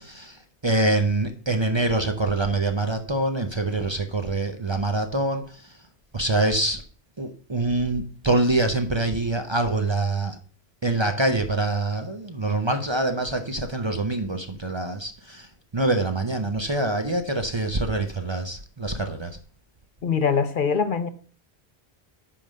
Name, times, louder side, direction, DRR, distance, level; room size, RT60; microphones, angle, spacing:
voice 1, 0.0-5.6 6.1-6.8 7.2-10.4 10.8-15.5 15.7-19.4, right 2 dB, 30° right, 0.7 m, -25 dB
voice 2, 20.0-21.1, left 5 dB, 55° left, 0.8 m, -23 dB
10.0 x 3.7 x 6.5 m
omnidirectional pair, 1.1 m